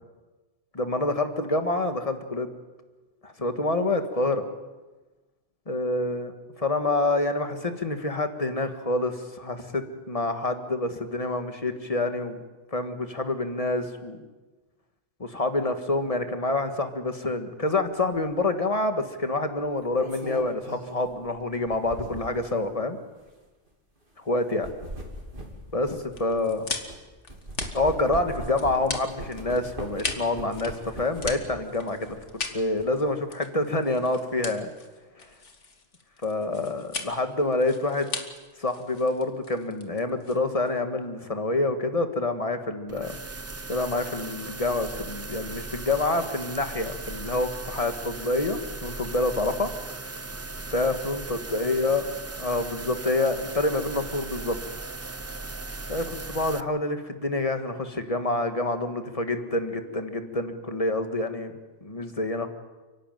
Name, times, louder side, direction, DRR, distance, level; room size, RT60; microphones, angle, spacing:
voice 1, 0.7-2.5 3.2-4.5 5.7-6.3 6.6-12.4 12.7-14.2 15.2-23.0 24.3-24.7 25.7-26.7 27.7-34.7 36.2-38.1 38.6-43.2 43.7-49.7 50.7-52.0 52.4-54.8 55.9-61.5 61.8-62.5, left 2 dB, 30° left, 7 dB, 1.8 m, -27 dB
sound 1, 18.1-18.3 19.6-22.5 23.1-23.3 24.4-27.0 27.3-31.6 32.0-32.8, equal, 50° right, 3.5 m, -40 dB
sound 2, 26.1-40.8, left 4 dB, 90° left, 2.2 m, -38 dB
sound 3, 42.9-56.6, right 3 dB, 20° right, 0.5 m, -38 dB
30.0 x 11.5 x 9.2 m, 1.2 s
omnidirectional pair, 1.2 m